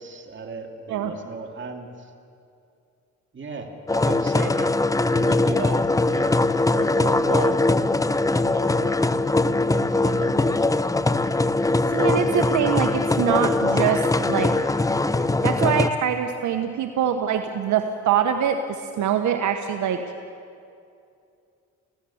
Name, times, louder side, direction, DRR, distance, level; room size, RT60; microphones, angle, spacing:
voice 1, 0.0-2.1 3.3-4.8 5.1-6.4 6.7-7.6 8.3-9.0 9.6-10.9, right 4 dB, 40° right, 3 dB, 2.8 m, -35 dB
sound 1, 3.9-15.9, left 2 dB, 10° left, 0.7 m, -21 dB
voice 2, 11.9-14.5 15.4-20.0, right 8 dB, 75° right, 6 dB, 1.2 m, -24 dB
26.0 x 16.0 x 7.2 m, 2.5 s
cardioid pair, 90°, 30 cm